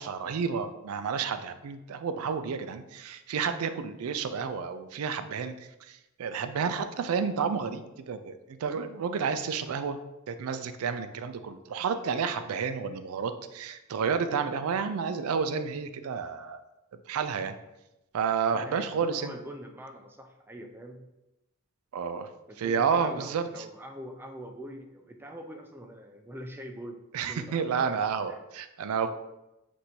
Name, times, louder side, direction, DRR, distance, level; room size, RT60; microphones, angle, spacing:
voice 1, 0.0-5.5 5.8-10.0 10.3-16.6 17.1-17.6 18.1-19.4 21.9-22.3 22.6-23.5 27.1-29.1, right 6 dB, 90° right, 10 dB, 0.4 m, -30 dB
voice 2, 18.5-21.0 22.5-28.0 28.3-28.4, equal, 10° right, 4 dB, 0.3 m, -44 dB
6.0 x 2.6 x 2.8 m, 0.95 s
head